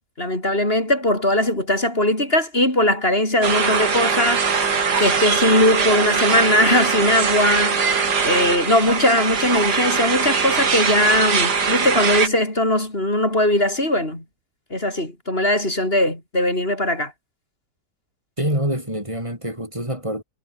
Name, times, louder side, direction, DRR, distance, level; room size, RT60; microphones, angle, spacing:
voice 1, 0.2-7.8 8.2-14.2 14.7-17.1, left 1 dB, 35° left, 6.8 m, -20 dB
sound 1, 3.4-12.3, right 5 dB, 75° right, 3.0 m, -21 dB
voice 2, 18.4-20.2, right 1 dB, 15° right, 6.6 m, -25 dB
omnidirectional pair, 1.8 m